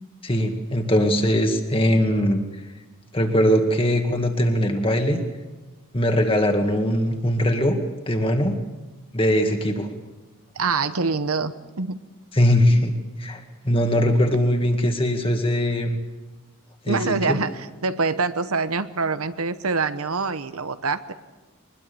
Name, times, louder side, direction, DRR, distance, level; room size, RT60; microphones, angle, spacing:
voice 1, 0.2-2.4 3.1-5.2 5.9-7.8 8.1-8.5 9.1-9.9 12.4-12.9 13.2-16.0 16.9-17.0 17.3-17.4, equal, 25° left, 4 dB, 2.1 m, -21 dB
voice 2, 10.5-12.0 16.9-21.1, right 4 dB, 80° right, 11 dB, 1.0 m, -25 dB
23.0 x 21.0 x 7.0 m, 1.2 s
head